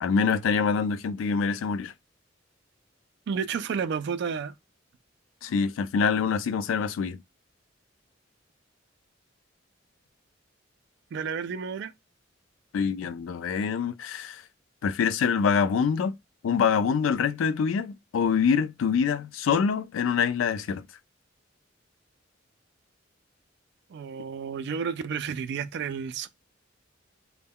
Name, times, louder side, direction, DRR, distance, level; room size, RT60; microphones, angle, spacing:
voice 1, 0.0-1.9 5.4-7.2 12.7-14.4 14.8-16.1 16.4-20.8, left 6 dB, 85° left, 0.3 m, -25 dB
voice 2, 3.3-4.5 11.1-11.9 23.9-26.3, right 6 dB, 60° right, 0.3 m, -31 dB
2.1 x 2.1 x 3.4 m
head